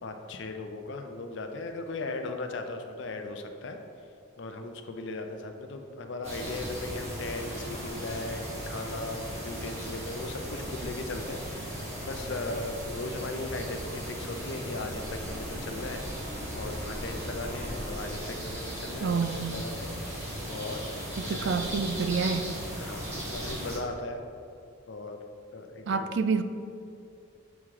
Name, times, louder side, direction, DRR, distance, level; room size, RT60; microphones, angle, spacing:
voice 1, 0.0-3.8 4.4-16.3 16.5-20.9 21.2-21.6 22.7-24.2 24.9-25.2 25.5-26.1, left 2 dB, 60° left, 5 dB, 0.5 m, -38 dB
sound 1, 6.2-23.8, equal, 30° right, 1.4 m, -37 dB
voice 2, 19.0-19.5 21.2-22.5 25.9-26.4, right 5 dB, 55° right, 10 dB, 0.3 m, -28 dB
7.2 x 4.7 x 3.7 m, 2.5 s
head